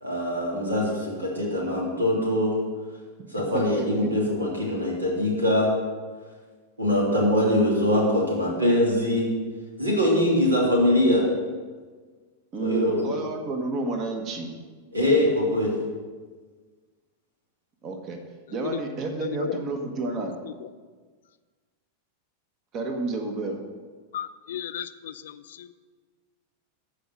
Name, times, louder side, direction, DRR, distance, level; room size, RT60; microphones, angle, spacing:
voice 1, 0.0-2.5 3.3-5.7 6.8-9.3 9.8-11.3 12.6-13.0 14.9-15.7, left 1 dB, 80° right, -2 dB, 2.9 m, -23 dB
voice 2, 3.5-4.1 12.5-14.5 17.8-18.2 18.5-20.4 22.7-23.6, right 3 dB, 35° right, 5 dB, 1.4 m, -30 dB
voice 3, 19.2-19.6 20.4-20.5 24.1-25.7, left 10 dB, 60° left, 13 dB, 0.4 m, -34 dB
13.5 x 5.0 x 6.3 m, 1.5 s
figure-of-eight pair, 90°, 0 cm